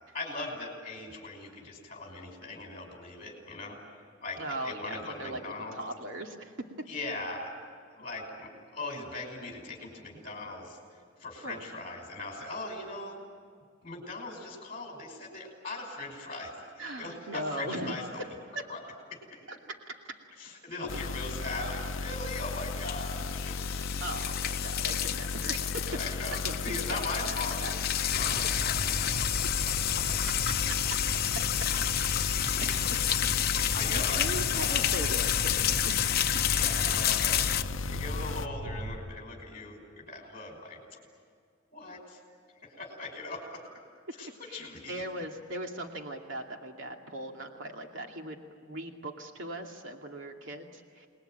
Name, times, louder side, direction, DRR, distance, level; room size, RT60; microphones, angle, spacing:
voice 1, 0.0-3.8 4.2-5.8 6.9-7.5 7.8-13.2 13.8-18.2 18.7-18.8 19.1-19.2 20.4-23.8 25.1-25.2 25.8-29.2 29.6-29.8 30.0-30.2 31.7-31.8 32.4-32.9 33.2-35.0 36.2-37.5 37.9-41.0 41.7-42.2 42.6-43.7 44.2-45.0, left 2 dB, 30° left, 0 dB, 5.6 m, -40 dB
voice 2, 4.4-6.5 11.4-11.6 16.8-18.0 18.5-18.6 19.5-19.6 24.0-25.9 26.4-27.3 27.6-27.7 32.3-32.8 33.5-36.1 44.5-51.1, right 1 dB, 75° right, 2 dB, 2.4 m, -39 dB
sound 1, 20.9-38.5, left 4 dB, 80° left, 0.6 m, -36 dB
sound 2, 22.1-37.6, left 11 dB, 50° left, 0.9 m, -30 dB
Fire, 28.1-39.0, equal, 55° right, 2.0 m, -38 dB
28.5 x 20.5 x 9.1 m, 2.2 s
head